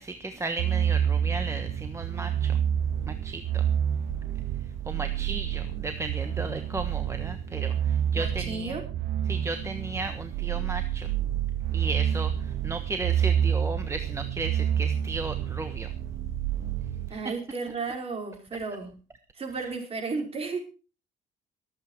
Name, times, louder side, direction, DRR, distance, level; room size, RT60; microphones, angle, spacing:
voice 1, 0.0-2.6 3.1-3.6 4.9-8.7 9.3-11.1 11.7-15.9, right 3 dB, 15° right, 8 dB, 1.3 m, -35 dB
sound 1, 0.6-17.1, right 9 dB, 85° right, 1.7 m, -28 dB
voice 2, 8.1-8.8 17.1-18.9 19.3-20.6, right 4 dB, 35° right, 4 dB, 5.0 m, -33 dB
22.5 x 8.6 x 4.6 m, 0.35 s
cardioid pair, 110°, 17 cm